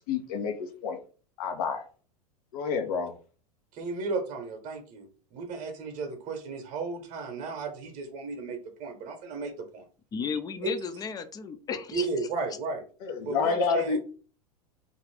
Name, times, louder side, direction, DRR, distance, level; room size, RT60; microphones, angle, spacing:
voice 1, 0.1-1.0 1.4-1.8 2.5-3.1 13.0-14.0, left 5 dB, 65° left, 7 dB, 0.7 m, -28 dB
voice 2, 3.7-9.9 10.6-10.7 11.9-12.8 13.2-14.0, right 3 dB, 40° right, 5 dB, 0.9 m, -34 dB
voice 3, 10.1-12.1, left 5 dB, 20° left, 10 dB, 0.4 m, -34 dB
2.5 x 2.4 x 3.2 m, 0.39 s
hypercardioid pair, 95°, 20 cm